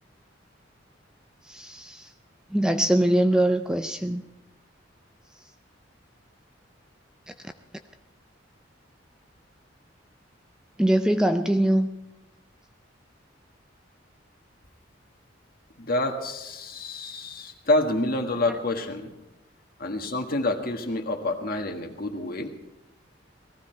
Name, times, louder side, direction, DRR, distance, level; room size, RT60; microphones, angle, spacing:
voice 1, 1.4-2.1 2.5-4.2 10.8-11.9, right 1 dB, 5° right, 7 dB, 0.4 m, -22 dB
voice 2, 15.8-19.1 19.8-22.5, left 2 dB, 50° left, 4 dB, 1.7 m, -28 dB
18.5 x 15.0 x 4.5 m, 0.94 s
head